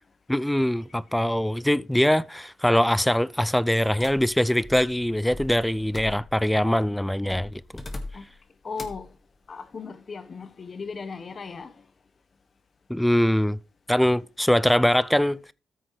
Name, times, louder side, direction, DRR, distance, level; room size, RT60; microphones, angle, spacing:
voice 1, 0.3-7.8 12.9-13.6 13.9-15.5, equal, 5° left, 0.4 m, -23 dB
sound 1, 4.0-6.6 7.3-8.4 8.8-9.1, left 2 dB, 30° left, 1.8 m, -40 dB
voice 2, 8.6-9.1 9.5-11.8, left 5 dB, 45° left, 1.1 m, -37 dB
14.0 x 6.2 x 3.2 m
supercardioid pair, 65°, 0 cm